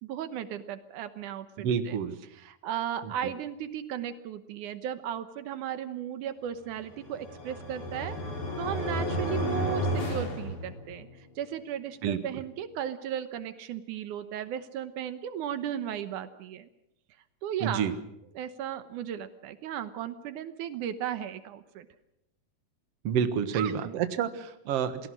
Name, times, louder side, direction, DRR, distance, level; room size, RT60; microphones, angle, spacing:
voice 1, 0.0-2.0 2.2-8.2 8.6-11.1 11.4-16.7 17.4-17.9 18.3-21.9 23.5-23.9, right 10 dB, 80° right, 11 dB, 2.5 m, -35 dB
voice 2, 1.6-2.1 12.0-12.2 17.6-17.9 23.0-25.1, right 7 dB, 55° right, 10 dB, 2.2 m, -28 dB
sound 1, 6.8-11.2, equal, 70° left, 5.8 m, -32 dB
28.5 x 18.5 x 6.3 m, 0.84 s
omnidirectional pair, 3.5 m